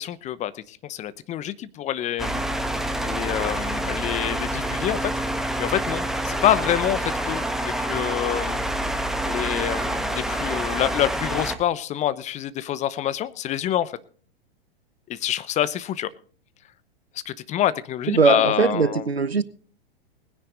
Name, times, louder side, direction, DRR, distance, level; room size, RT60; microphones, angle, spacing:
voice 1, 0.0-2.4 3.0-5.1 5.6-8.6 9.3-13.9 15.1-16.1 17.3-19.0, left 11 dB, 25° left, 16 dB, 0.8 m, -26 dB
sound 1, 2.2-11.6, right 1 dB, ahead, 1.4 m, -27 dB
voice 2, 18.1-19.4, right 5 dB, 90° right, 17 dB, 0.9 m, -20 dB
20.0 x 10.0 x 3.9 m, 0.43 s
figure-of-eight pair, 100°, 30 cm